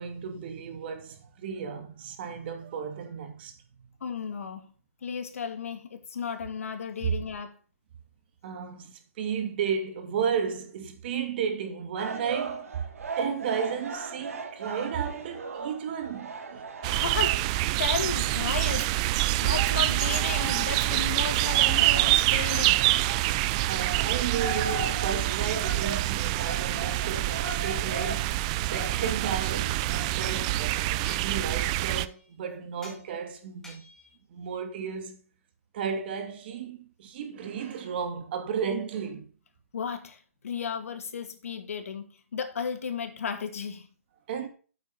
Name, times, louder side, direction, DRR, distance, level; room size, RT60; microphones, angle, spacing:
voice 1, 0.0-3.5 7.0-7.2 8.4-12.8 13.2-16.7 19.2-19.5 23.7-28.3 28.6-33.8 34.3-35.2 35.7-39.3 44.3-44.5, right 7 dB, 40° right, 2.5 m, -33 dB
voice 2, 4.0-4.7 5.0-7.5 16.8-17.5 17.8-22.9 39.7-43.9, left 6 dB, 65° left, 2.2 m, -34 dB
sound 1, 12.0-30.1, right 4 dB, 70° right, 2.8 m, -39 dB
sound 2, 16.8-32.1, right 17 dB, 25° right, 0.4 m, -26 dB
sound 3, 29.4-30.7 31.0-31.5 31.9-32.3 32.8-33.0 33.6-34.1, left 1 dB, 5° left, 2.4 m, -48 dB
8.6 x 8.2 x 4.0 m
hypercardioid pair, 150°, 8 cm